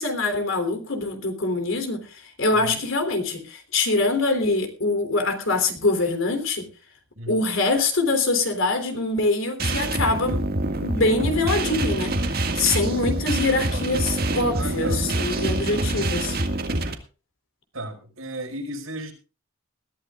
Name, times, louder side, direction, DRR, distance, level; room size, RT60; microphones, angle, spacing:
voice 1, 0.0-6.7 7.3-10.4 10.8-16.4, left 3 dB, 65° left, 7 dB, 3.4 m, -24 dB
voice 2, 7.2-7.5 14.5-16.1 17.7-19.1, right 1 dB, 75° right, 2 dB, 5.3 m, -36 dB
sound 1, 9.6-16.9, right 1 dB, 45° right, 1.9 m, -26 dB
21.5 x 14.0 x 2.4 m, 0.34 s
head